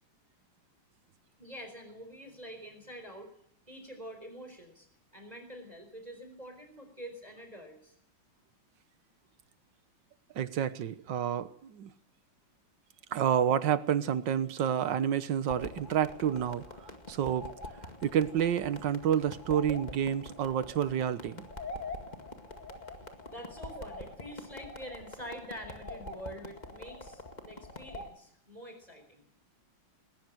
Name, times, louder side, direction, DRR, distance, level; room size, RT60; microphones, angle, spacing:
voice 1, 1.4-3.3 3.7-4.9 5.1-7.9 23.3-29.2, equal, 20° right, 5 dB, 4.4 m, -46 dB
voice 2, 10.4-11.9 13.1-16.6 17.1-17.5 18.0-21.5, right 9 dB, 65° right, 13 dB, 1.7 m, -29 dB
sound 1, 15.5-28.1, left 2 dB, 20° left, 2.0 m, -44 dB
20.5 x 19.0 x 7.8 m, 0.67 s
omnidirectional pair, 2.2 m